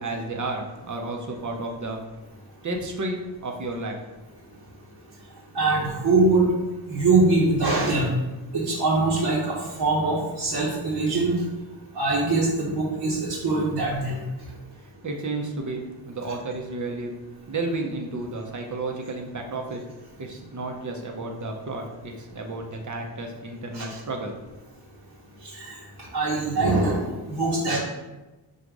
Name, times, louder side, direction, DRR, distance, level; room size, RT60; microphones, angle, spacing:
voice 1, 0.0-2.0 2.6-4.0 14.8-17.1 17.5-19.8 20.2-24.3, right 2 dB, 40° right, 2 dB, 0.8 m, -32 dB
voice 2, 5.5-6.5 6.9-8.1 8.5-11.3 11.9-14.2 23.7-23.8 25.5-25.8 26.1-27.8, right 3 dB, 65° right, -7 dB, 1.1 m, -23 dB
3.9 x 2.5 x 4.6 m, 1.1 s
cardioid pair, 70°, 45 cm